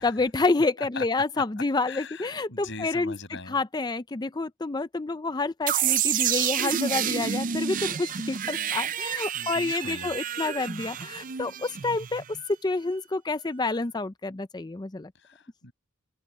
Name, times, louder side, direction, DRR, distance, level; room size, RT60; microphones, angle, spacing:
voice 1, 0.0-3.2 3.5-12.2 12.6-15.1, left 3 dB, 20° left, 0.5 m, -28 dB
voice 2, 1.8-3.6 9.3-10.1 15.2-15.7, left 3 dB, 60° left, 7.7 m, -41 dB
sound 1, 5.7-12.5, right 9 dB, 40° right, 0.5 m, -29 dB
open air
head